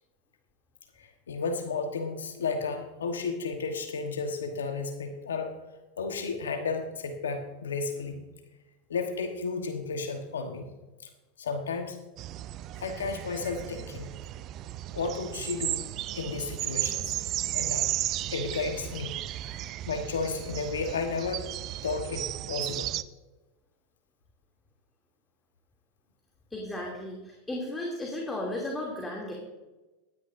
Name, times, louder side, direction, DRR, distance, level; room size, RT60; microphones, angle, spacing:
voice 1, 1.0-5.5 6.0-8.2 8.9-10.7 11.0-11.1 11.4-12.0 12.8-14.1 14.9-15.8 16.1-17.2 17.5-18.0 18.3-19.1 19.5-21.5 21.8-22.9, left 4 dB, 85° left, 6 dB, 1.2 m, -33 dB
sound 1, 12.2-23.0, right 14 dB, 45° right, 0.4 m, -34 dB
voice 2, 26.5-29.3, left 1 dB, 15° left, -1 dB, 2.7 m, -35 dB
16.0 x 11.5 x 2.6 m, 1.1 s
hypercardioid pair, 90°, 0 cm